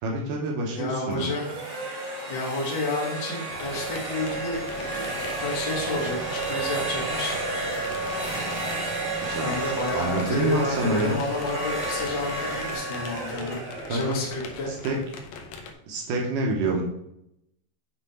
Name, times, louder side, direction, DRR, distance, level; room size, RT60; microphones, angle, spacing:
voice 1, 0.0-1.3 8.7-9.5 9.9-11.2 13.9-14.2 14.7-15.0 15.9-16.8, right 2 dB, 80° right, 0 dB, 2.5 m, -28 dB
voice 2, 0.7-1.4 2.3-7.3 8.2-9.0 9.4-13.6 13.9-14.7, left 2 dB, 40° left, -4 dB, 1.9 m, -31 dB
sound 1, 1.1-15.0, right 2 dB, 55° right, 3.9 m, -32 dB
sound 2, 3.5-15.7, left 4 dB, 75° left, 1.8 m, -42 dB
Car / Engine, 4.5-12.8, left 3 dB, 90° left, 2.4 m, -44 dB
7.4 x 3.6 x 4.2 m, 0.80 s
omnidirectional pair, 3.8 m